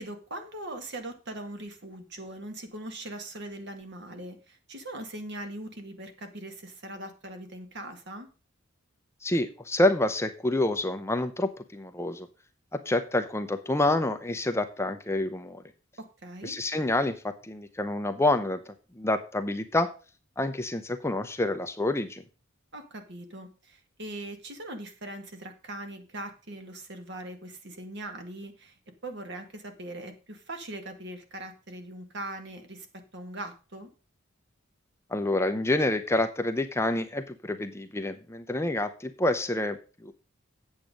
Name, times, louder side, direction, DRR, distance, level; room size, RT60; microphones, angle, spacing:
voice 1, 0.0-8.3 16.0-16.6 22.7-28.8 29.0-33.9, right 1 dB, 55° right, 6 dB, 1.9 m, -41 dB
voice 2, 9.2-12.3 12.7-15.6 16.4-18.6 19.0-19.9 20.4-22.2 35.1-39.8 40.0-40.1, left 2 dB, 15° left, 8 dB, 0.7 m, -27 dB
8.9 x 7.5 x 5.2 m, 0.34 s
head